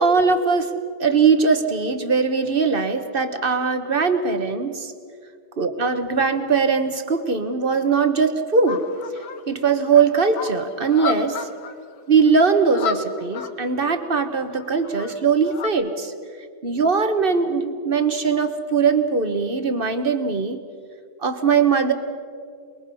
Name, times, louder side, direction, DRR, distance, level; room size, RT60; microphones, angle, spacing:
voice 1, 0.0-4.9 5.6-8.8 9.5-11.5 12.1-16.1 16.6-20.6 21.2-21.9, right 5 dB, 30° right, 8 dB, 1.3 m, -20 dB
Canada Geese, 8.7-9.4 9.8-11.7 12.0-12.1 12.3-12.4 12.5-13.8 14.5-15.7, left 7 dB, 85° left, 1.9 m, -32 dB
29.0 x 21.5 x 5.6 m, 2.1 s
omnidirectional pair, 2.1 m